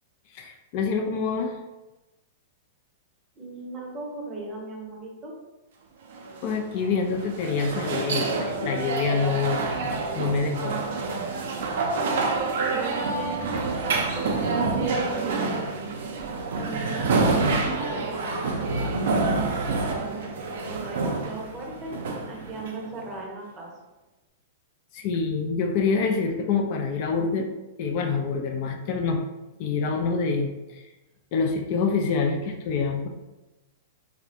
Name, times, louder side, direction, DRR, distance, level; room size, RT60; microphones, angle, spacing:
voice 1, 0.3-1.6 6.4-9.7 10.1-10.8 24.9-27.5 27.8-29.2 29.6-30.9 31.3-33.1, left 5 dB, 50° left, 3 dB, 0.3 m, -26 dB
voice 2, 3.4-5.3 12.7-13.4 14.1-15.6 16.6-18.8 20.0-20.3 20.6-21.9 22.3-23.7, right 2 dB, 25° right, -2 dB, 0.6 m, -37 dB
sound 1, 6.1-23.1, right 3 dB, 70° right, 0.4 m, -27 dB
2.4 x 2.0 x 2.7 m, 1.0 s
hypercardioid pair, 130°, 0 cm